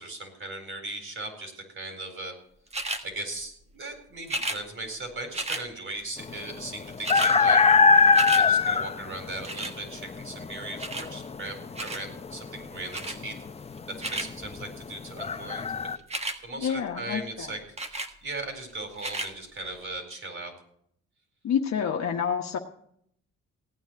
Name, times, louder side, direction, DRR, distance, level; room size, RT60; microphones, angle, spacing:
voice 1, 0.0-2.3 3.0-7.6 8.0-13.4 13.9-15.7 16.4-17.6 17.9-20.5, right 2 dB, 45° right, 6 dB, 4.4 m, -38 dB
sound 1, 2.7-3.0 4.2-4.6 5.3-5.6 6.6-6.7 6.9-7.3 7.7-8.4 9.4-9.8 10.8-11.1 11.7-12.0 12.9-13.2 13.8-14.3 16.0-16.4 17.8-18.1 18.9-19.3 20.0-20.1, right 2 dB, 20° right, 1.5 m, -32 dB
sound 2, 6.2-16.0, left 4 dB, 20° left, 0.6 m, -23 dB
voice 2, 16.6-17.5 21.4-22.6, left 7 dB, 60° left, 2 dB, 1.3 m, -28 dB
17.0 x 9.3 x 6.3 m, 0.69 s
cardioid pair, 90°, 30 cm